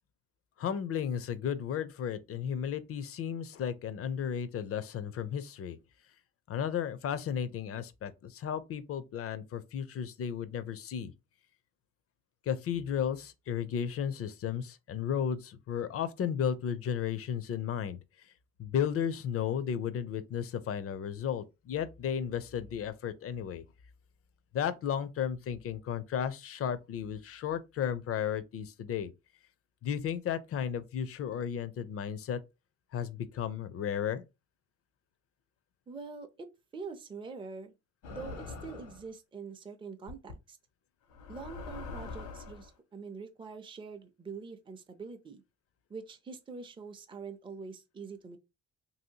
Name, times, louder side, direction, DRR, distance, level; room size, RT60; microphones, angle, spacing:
voice 1, 0.6-5.8 6.5-11.1 12.5-18.0 18.6-23.6 24.5-29.1 29.8-32.4 32.9-34.2, left 8 dB, 50° left, 0.5 m, -34 dB
voice 2, 35.9-36.5 36.7-37.7 38.1-40.6 41.3-45.4 45.9-48.4, right 5 dB, 15° right, 0.5 m, -44 dB
sound 1, 38.0-39.1 40.1-40.3 41.1-42.7, left 4 dB, 90° left, 1.1 m, -43 dB
2.9 x 2.7 x 2.7 m
cardioid pair, 90°, 30 cm